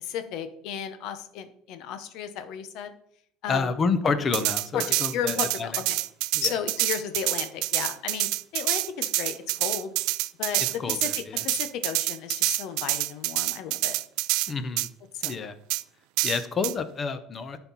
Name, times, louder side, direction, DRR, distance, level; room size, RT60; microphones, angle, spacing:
voice 1, 0.0-2.9 3.4-3.7 4.7-6.0 6.4-9.9 10.4-14.0 15.1-15.4, left 8 dB, 65° left, 9 dB, 1.0 m, -34 dB
voice 2, 3.5-5.8 6.3-6.5 10.8-11.4 14.5-14.9 15.2-15.5 16.2-17.6, left 4 dB, 30° left, 11 dB, 0.9 m, -29 dB
sound 1, 4.3-14.5 14.8-14.9 15.2-15.3 15.7-15.8 16.2-16.7, right 19 dB, 75° right, 0.3 m, -27 dB
11.0 x 4.5 x 4.1 m, 0.68 s
cardioid pair, 120°, 0 cm